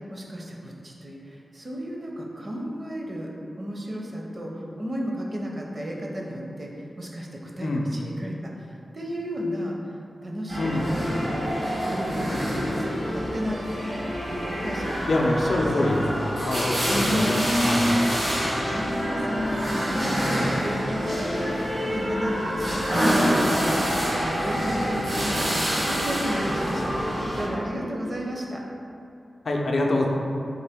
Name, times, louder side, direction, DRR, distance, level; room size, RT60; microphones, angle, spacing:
voice 1, 0.1-9.8 10.2-13.6 14.3-16.0 16.8-21.5 21.8-23.9 24.1-28.6, equal, 40° right, -1 dB, 0.5 m, -32 dB
sound 1, 10.5-27.5, equal, 75° right, 1.2 m, -26 dB
voice 2, 10.6-10.9 15.1-17.9 29.4-30.1, left 2 dB, 65° left, 0 dB, 0.4 m, -25 dB
3.7 x 2.5 x 3.5 m, 2.7 s
wide cardioid pair, 90°, 0 cm